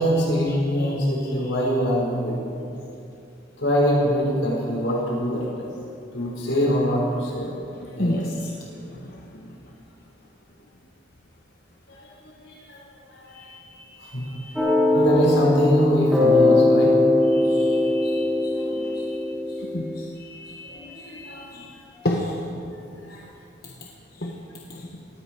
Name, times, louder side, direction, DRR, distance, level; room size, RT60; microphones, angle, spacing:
voice 1, 0.0-2.6 3.6-5.7 6.1-7.5 8.0-8.3 11.9-12.1 12.4-12.8 13.1-13.4 14.0-14.6 14.9-16.9 18.5-18.8 20.7-21.6 21.9-22.0 23.1-23.2, equal, 80° left, -3 dB, 4.9 m, -24 dB
voice 2, 8.0-8.3 17.3-19.0 19.7-19.9 20.2-21.4 22.0-22.3 22.6-22.7 24.2-24.3 24.7-24.8, left 1 dB, 50° left, -1 dB, 1.2 m, -30 dB
sound 1, 14.6-20.0, left 2 dB, ahead, 3.8 m, -20 dB
18.5 x 15.0 x 4.6 m, 2.6 s
head